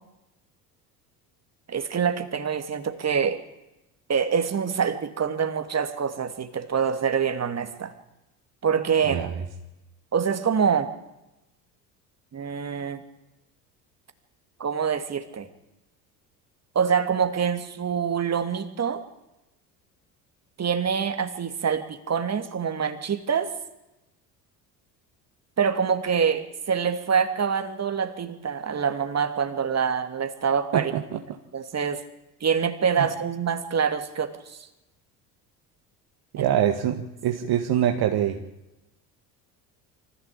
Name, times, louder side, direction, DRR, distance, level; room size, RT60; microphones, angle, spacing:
voice 1, 1.7-3.4 4.1-7.9 8.6-9.2 10.1-10.9 12.3-13.0 14.6-15.5 16.7-19.0 20.6-23.5 25.6-30.9 31.5-32.0 32.4-34.6 36.4-36.5, right 7 dB, 30° right, 8 dB, 2.8 m, -25 dB
voice 2, 9.1-9.4 30.7-31.2 33.0-33.1 36.3-38.4, right 10 dB, 50° right, 5 dB, 1.9 m, -24 dB
24.0 x 15.5 x 8.7 m, 0.95 s
hypercardioid pair, 65°, 48 cm